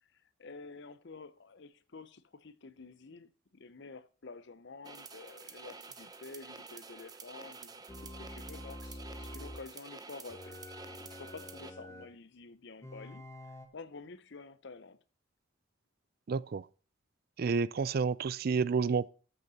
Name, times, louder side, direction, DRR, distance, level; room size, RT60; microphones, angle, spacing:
voice 1, 0.0-13.2 13.7-15.0, left 4 dB, 60° left, 0.7 m, -50 dB
sound 1, 4.8-11.7, right 4 dB, 20° right, 0.8 m, -49 dB
sound 2, 7.9-9.7 10.3-12.1 12.8-13.7, left 1 dB, 15° left, 1.1 m, -47 dB
voice 2, 16.3-16.7 17.4-19.1, right 5 dB, 50° right, 0.4 m, -30 dB
13.5 x 6.7 x 4.2 m
head